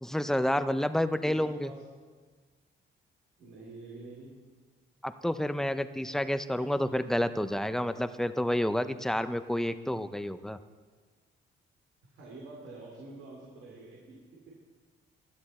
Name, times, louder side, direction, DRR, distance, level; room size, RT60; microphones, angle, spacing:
voice 1, 0.0-1.7 5.0-10.6, left 1 dB, ahead, 11 dB, 0.6 m, -29 dB
voice 2, 1.2-1.8 3.4-4.4 5.9-6.2 6.5-6.8 12.0-14.6, right 2 dB, 80° right, -3 dB, 2.6 m, -48 dB
15.5 x 11.0 x 4.3 m, 1.4 s
cardioid pair, 90°, 20 cm